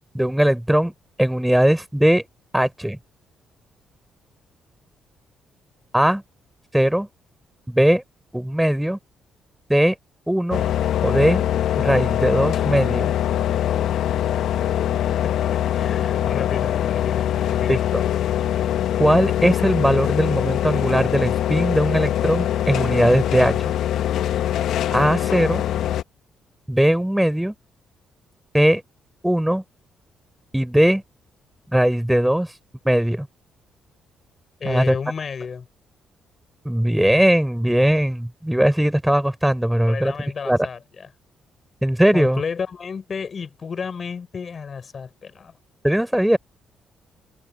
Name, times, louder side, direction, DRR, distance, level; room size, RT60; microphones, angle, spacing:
voice 1, 0.1-0.9 1.2-2.2 2.5-3.0 5.9-6.2 6.7-7.1 7.7-8.0 8.3-9.0 9.7-10.0 10.3-10.6 11.0-11.4 11.8-13.1 17.7-18.0 19.0-23.7 24.9-25.6 26.7-27.5 28.5-28.8 29.2-29.6 30.5-31.0 31.7-32.5 32.8-33.3 34.7-35.0 36.7-40.1 40.4-40.6 41.8-42.4 45.8-46.4, equal, 5° right, 3.8 m, -19 dB
sound 1, 10.5-26.0, left 11 dB, 75° left, 0.9 m, -23 dB
voice 2, 15.7-17.9 34.6-35.7 39.7-41.1 42.1-45.5, left 6 dB, 45° left, 6.0 m, -32 dB
cardioid pair, 90°, 0 cm